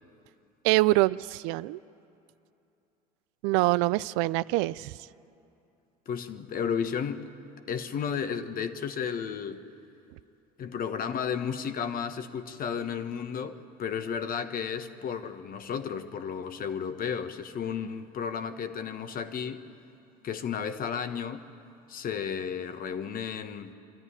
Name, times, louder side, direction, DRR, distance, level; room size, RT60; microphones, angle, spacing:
voice 1, 0.6-1.8 3.4-5.0, right 20 dB, 65° right, 18 dB, 0.4 m, -25 dB
voice 2, 6.1-7.3 7.7-9.6 10.6-19.7 20.2-21.5 21.9-23.7, left 7 dB, 45° left, 10 dB, 1.3 m, -33 dB
24.0 x 13.5 x 9.9 m, 2.7 s
hypercardioid pair, 80°, 21 cm